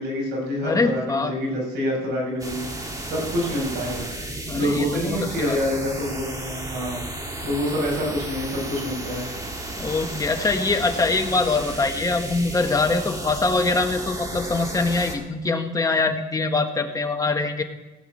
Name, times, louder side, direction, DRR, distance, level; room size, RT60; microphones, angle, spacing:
voice 1, 0.0-4.1 4.5-7.0 7.4-9.3, equal, 85° right, -3 dB, 5.9 m, -27 dB
voice 2, 0.6-1.3 4.5-5.6 9.8-17.6, left 3 dB, 20° left, 5 dB, 1.4 m, -23 dB
sound 1, 2.4-15.1, right 1 dB, 20° right, 2.5 m, -33 dB
17.0 x 6.0 x 8.6 m, 1.2 s
cardioid pair, 110°, 17 cm